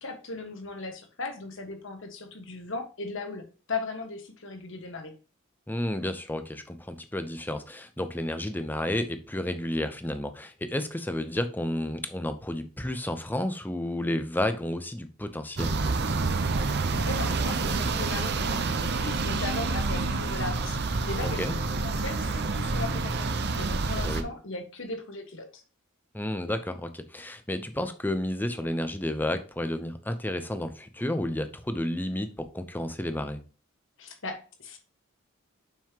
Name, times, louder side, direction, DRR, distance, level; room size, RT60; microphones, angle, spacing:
voice 1, 0.0-5.1 16.9-25.6 34.0-34.8, left 3 dB, 60° left, 1.6 m, -37 dB
voice 2, 5.7-15.8 21.2-21.5 24.0-24.3 26.1-33.4, left 1 dB, 10° left, 0.7 m, -31 dB
sound 1, 15.6-24.2, right 3 dB, 50° right, 0.7 m, -28 dB
7.4 x 5.6 x 2.9 m
head